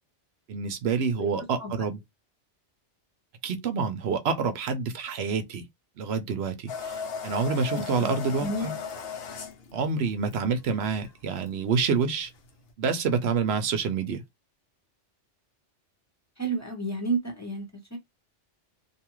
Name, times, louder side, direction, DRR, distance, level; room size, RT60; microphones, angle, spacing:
voice 1, 0.5-2.0 3.4-5.7 6.0-8.7 9.7-12.3 12.8-14.2, right 5 dB, 65° right, 0.8 m, -27 dB
sound 1, 6.7-12.7, left 6 dB, 60° left, 0.8 m, -37 dB
voice 2, 7.7-8.1 8.4-8.8 16.4-18.0, right 2 dB, 15° left, 0.9 m, -31 dB
2.6 x 2.3 x 2.9 m
omnidirectional pair, 1.2 m